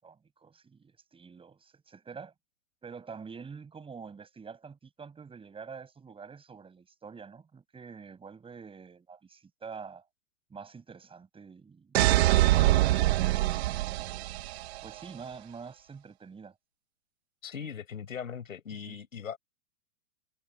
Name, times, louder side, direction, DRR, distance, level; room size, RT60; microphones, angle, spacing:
voice 1, 0.0-2.3 2.8-10.0 10.5-11.9 12.2-13.4 14.8-16.5 18.9-19.0, right 5 dB, 15° right, 7.5 m, -46 dB
sound 1, 11.9-14.8, right 17 dB, 50° right, 1.4 m, -24 dB
voice 2, 17.4-19.4, left 7 dB, 75° left, 6.8 m, -39 dB
hypercardioid pair, 115°, 40 cm